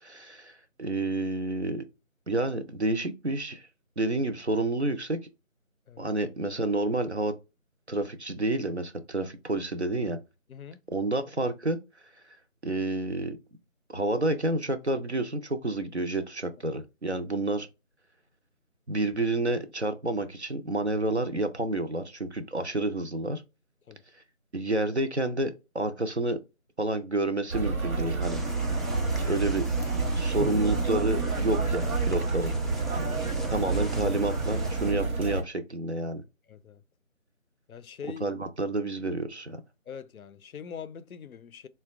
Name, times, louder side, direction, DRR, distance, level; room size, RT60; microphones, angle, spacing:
voice 1, 0.0-1.8 2.3-3.7 4.0-5.2 6.0-7.3 7.9-10.2 10.9-11.8 12.6-13.4 13.9-17.7 18.9-23.4 24.5-26.4 26.8-28.4 29.3-29.7 30.1-32.5 33.0-33.1 33.5-36.2 38.0-39.6, right 2 dB, 55° right, 0.5 m, -29 dB
voice 2, 10.5-10.8 23.9-24.0 33.0-33.2 36.5-36.8 37.7-38.2 39.9-41.7, left 7 dB, 90° left, 0.5 m, -43 dB
sound 1, 27.5-35.4, right 3 dB, 80° right, 0.9 m, -28 dB
sound 2, 28.2-34.9, right 2 dB, ahead, 0.4 m, -39 dB
3.8 x 2.1 x 2.3 m
figure-of-eight pair, 180°, 42 cm